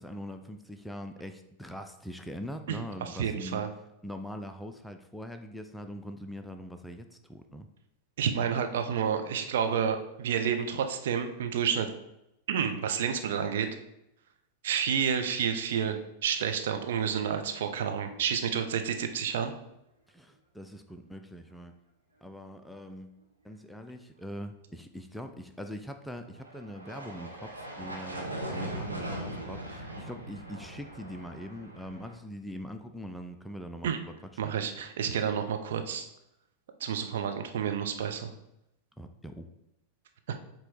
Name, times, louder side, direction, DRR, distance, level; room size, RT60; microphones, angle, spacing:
voice 1, 0.0-3.6 4.0-7.7 20.1-21.8 22.2-23.1 23.4-34.1 34.4-34.5 39.0-39.5, equal, 5° left, 6 dB, 0.4 m, -42 dB
voice 2, 3.1-3.7 8.2-11.9 12.5-13.7 14.6-19.5 33.8-34.0 34.4-36.1 36.8-38.3 40.3-40.4, right 7 dB, 60° right, 6 dB, 0.7 m, -30 dB
sound 1, 26.3-32.2, right 1 dB, 85° right, 1.1 m, -40 dB
7.6 x 3.0 x 4.5 m, 0.85 s
figure-of-eight pair, 90°, 0 cm